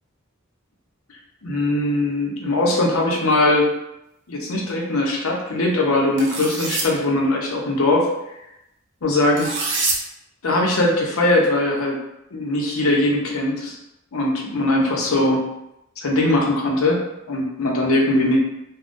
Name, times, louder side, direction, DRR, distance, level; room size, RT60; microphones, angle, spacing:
voice 1, 1.4-3.7 4.3-8.1 9.0-9.6 10.4-12.0 12.3-13.8 14.1-15.4 16.0-18.4, left 1 dB, 85° left, 0 dB, 0.7 m, -20 dB
sound 1, 6.2-6.9 9.4-10.0, right 3 dB, 55° right, 0.6 m, -25 dB
3.6 x 2.2 x 2.5 m, 0.86 s
head